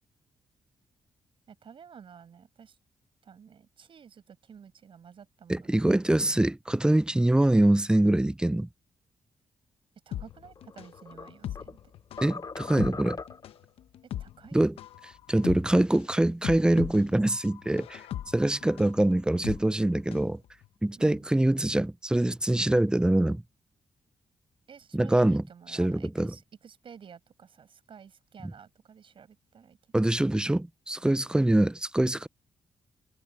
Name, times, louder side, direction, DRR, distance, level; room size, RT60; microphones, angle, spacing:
voice 1, 1.5-2.8 3.2-6.2 10.1-11.9 14.2-14.7 21.0-21.3 24.7-30.0, right 7 dB, 65° right, 6.0 m, -51 dB
voice 2, 5.5-8.7 12.2-13.2 14.5-14.7 15.3-18.0 18.3-20.4 20.8-23.4 24.9-26.3 29.9-32.3, right 1 dB, 10° right, 0.5 m, -24 dB
sound 1, 10.1-20.3 20.6-20.7, left 11 dB, 80° left, 1.0 m, -39 dB
sound 2, 10.4-11.8 12.2-13.6, left 4 dB, 40° left, 2.5 m, -40 dB
supercardioid pair, 50°, 10 cm